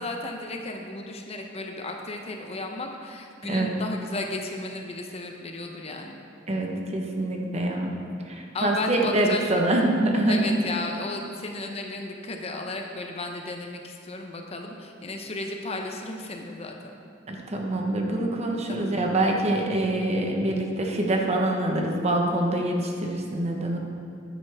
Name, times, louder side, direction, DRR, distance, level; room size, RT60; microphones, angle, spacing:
voice 1, 0.0-6.2 8.5-9.6 10.3-17.0 18.7-18.9, left 2 dB, 30° left, 3 dB, 0.7 m, -34 dB
voice 2, 6.5-8.0 8.3-10.4 17.3-23.8, right 1 dB, 35° right, 1 dB, 1.1 m, -25 dB
10.0 x 9.9 x 3.5 m, 2.4 s
head